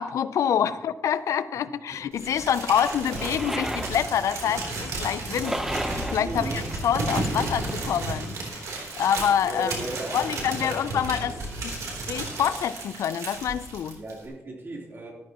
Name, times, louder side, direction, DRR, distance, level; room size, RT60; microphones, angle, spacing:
voice 1, 0.0-8.7 9.0-9.7 10.1-11.3 11.6-11.8 12.1-14.0, left 9 dB, 85° left, 14 dB, 0.5 m, -26 dB
voice 2, 1.9-2.4 6.2-6.6 9.4-11.5 14.0-15.1, right 2 dB, 45° right, -2 dB, 3.6 m, -37 dB
Crumpling crinkling, 2.2-14.3, right 2 dB, 90° right, 3.5 m, -33 dB
sound 1, 3.0-7.8, right 1 dB, 5° right, 0.9 m, -34 dB
13.5 x 13.5 x 3.0 m, 1.1 s
cardioid pair, 95°, 5 cm